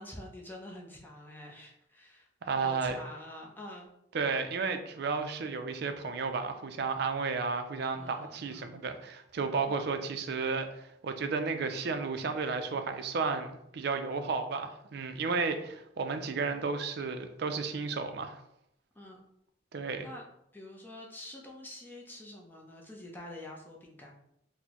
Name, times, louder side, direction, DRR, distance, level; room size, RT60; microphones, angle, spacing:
voice 1, 0.0-2.3 2.6-3.9 7.9-8.8 9.6-9.9 15.3-15.6 19.0-19.3 19.8-20.2 20.5-24.1, left 1 dB, 10° left, -1 dB, 0.5 m, -47 dB
voice 2, 2.4-3.0 4.1-18.4 19.7-20.1, right 4 dB, 55° right, 8 dB, 0.4 m, -33 dB
4.2 x 2.1 x 2.9 m, 0.77 s
head